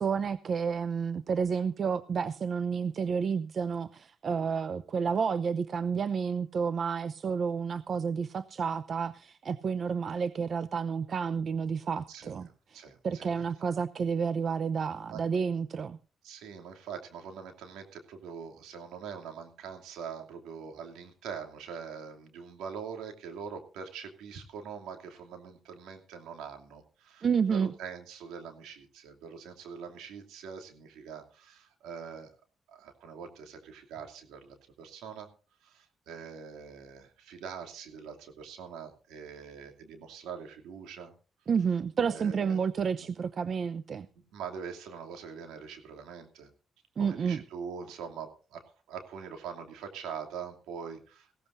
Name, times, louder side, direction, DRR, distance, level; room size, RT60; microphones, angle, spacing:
voice 1, 0.0-12.5 13.0-16.0 27.2-27.7 41.5-44.1 47.0-47.4, right 6 dB, 55° right, 13 dB, 0.7 m, -30 dB
voice 2, 12.1-13.3 15.1-15.2 16.2-32.3 32.7-35.3 35.6-41.1 42.1-42.7 43.0-43.1 44.3-46.5 47.0-51.3, right 6 dB, 90° right, 5 dB, 2.7 m, -43 dB
18.5 x 16.5 x 2.6 m, 0.37 s
cardioid pair, 65°, 0 cm